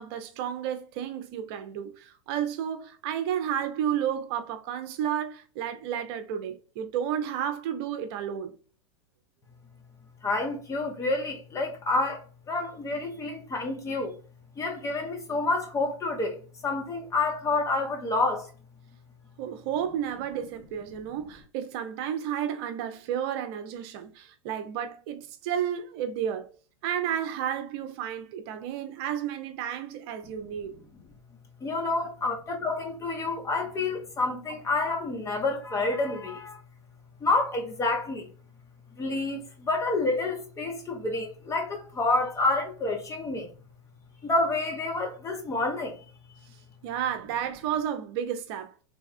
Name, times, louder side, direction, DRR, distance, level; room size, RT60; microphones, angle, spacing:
voice 1, 0.0-8.5 19.4-26.5 26.8-30.8 32.0-32.3 46.8-48.7, right 9 dB, 55° right, 0.6 m, -32 dB
voice 2, 10.2-14.2 14.6-18.5 31.6-36.6 37.2-38.3 39.0-43.5 44.2-46.1, left 2 dB, 20° left, 1.0 m, -28 dB
3.4 x 2.3 x 4.1 m
hypercardioid pair, 115°, 15 cm